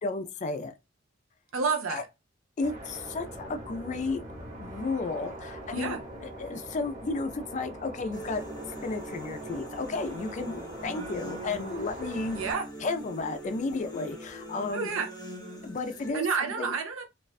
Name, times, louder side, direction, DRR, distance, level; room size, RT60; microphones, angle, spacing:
voice 1, 0.0-0.7 1.9-2.0 2.6-4.2 4.6-6.0 6.2-8.4 8.8-12.4 12.8-14.9 15.6-16.7, left 3 dB, 35° left, 0.4 m, -33 dB
voice 2, 1.5-2.0 5.7-6.0 12.3-12.7 14.7-15.1 16.1-17.0, right 5 dB, 90° right, 0.6 m, -29 dB
sound 1, 2.6-12.5, right 1 dB, 50° right, 1.1 m, -42 dB
sound 2, 8.1-16.1, equal, 20° left, 1.0 m, -42 dB
2.4 x 2.2 x 2.3 m
head